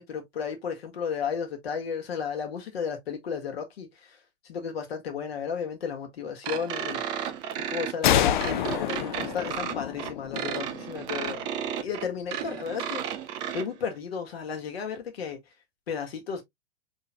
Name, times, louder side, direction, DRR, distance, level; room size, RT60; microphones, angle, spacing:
voice 1, 0.0-7.0 7.7-11.4 11.8-13.2 13.5-15.4 15.9-16.4, left 6 dB, 65° left, 1.7 m, -33 dB
sound 1, 6.4-13.6, right 9 dB, 15° right, 0.3 m, -33 dB
sound 2, 8.0-11.6, left 10 dB, 45° left, 0.5 m, -28 dB
4.5 x 3.6 x 2.2 m
figure-of-eight pair, 105°, 34 cm